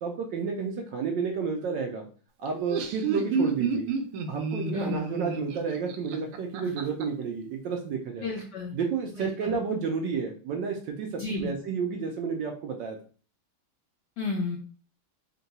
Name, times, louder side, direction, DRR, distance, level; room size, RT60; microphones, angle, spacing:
voice 1, 0.0-2.1 2.4-3.9 4.3-8.3 8.7-13.0, right 5 dB, 75° right, 2 dB, 1.1 m, -31 dB
Laughter, 2.5-7.0, right 5 dB, 90° right, 1.6 m, -30 dB
voice 2, 8.2-8.7 9.2-9.5 11.2-11.5 14.2-14.6, left 4 dB, 80° left, 1 dB, 0.9 m, -32 dB
3.7 x 2.2 x 4.0 m, 0.40 s
omnidirectional pair, 2.4 m